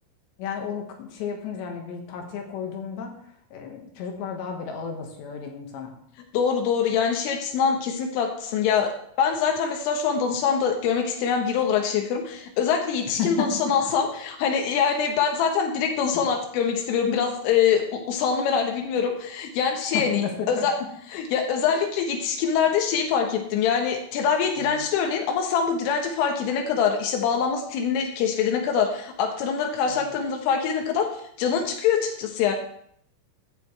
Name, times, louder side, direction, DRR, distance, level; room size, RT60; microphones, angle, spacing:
voice 1, 0.4-3.1 3.5-5.9 13.1-13.5 13.8-13.9 19.9-20.7 24.6-24.9 29.9-30.1, left 6 dB, 65° left, 2 dB, 3.6 m, -32 dB
voice 2, 6.3-20.7 21.1-31.1 31.4-32.5, left 7 dB, 85° left, 3 dB, 3.7 m, -24 dB
15.5 x 9.5 x 3.3 m, 0.67 s
omnidirectional pair, 5.7 m